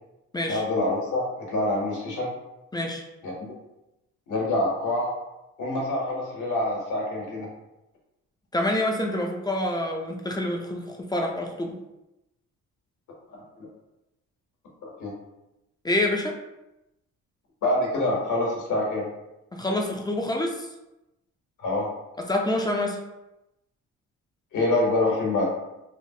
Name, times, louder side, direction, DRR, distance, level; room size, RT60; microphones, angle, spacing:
voice 1, 0.5-2.3 3.2-3.3 4.3-5.1 5.6-7.5 13.3-13.7 15.0-15.1 17.6-19.1 21.6-21.9 24.5-25.5, left 2 dB, 75° left, -2 dB, 1.1 m, -26 dB
voice 2, 2.7-3.0 8.5-11.8 15.8-16.4 19.5-20.7 22.2-23.0, left 1 dB, 15° left, 1 dB, 0.3 m, -27 dB
3.1 x 2.0 x 2.7 m, 0.93 s
cardioid pair, 90°, 31 cm